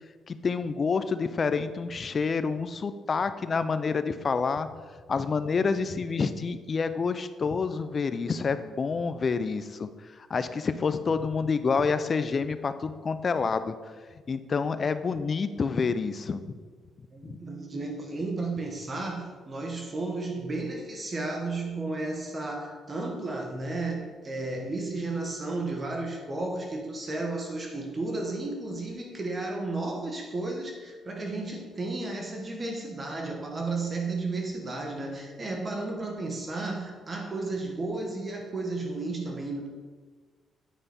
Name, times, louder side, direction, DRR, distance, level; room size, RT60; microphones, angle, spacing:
voice 1, 0.3-4.7 5.1-9.9 10.3-13.8 14.3-16.4 17.2-17.4, left 5 dB, 40° left, 12 dB, 0.5 m, -28 dB
voice 2, 17.1-39.7, right 2 dB, 30° right, 2 dB, 1.3 m, -33 dB
9.2 x 5.1 x 4.2 m, 1.5 s
cardioid pair, 90°, 0 cm